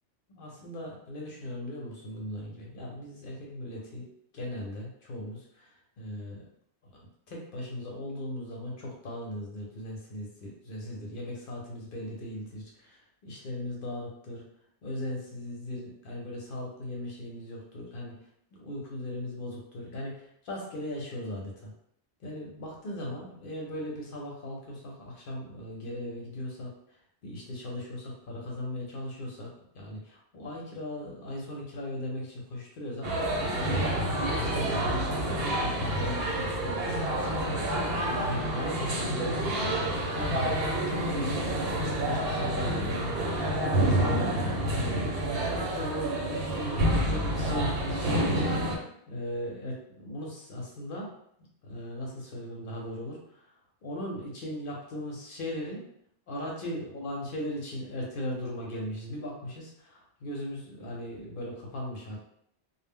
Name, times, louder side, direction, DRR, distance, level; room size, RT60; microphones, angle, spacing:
voice 1, 0.3-4.0 4.3-6.4 6.8-14.4 14.8-21.7 22.2-27.0 27.2-39.8 40.1-40.6 40.8-41.5 41.8-51.1 51.6-53.5 53.8-55.9 56.3-62.2, left 1 dB, 60° left, -2 dB, 0.7 m, -38 dB
sound 1, 33.0-48.8, right 1 dB, 65° right, 0.8 m, -28 dB
2.0 x 2.0 x 3.5 m, 0.70 s
omnidirectional pair, 1.1 m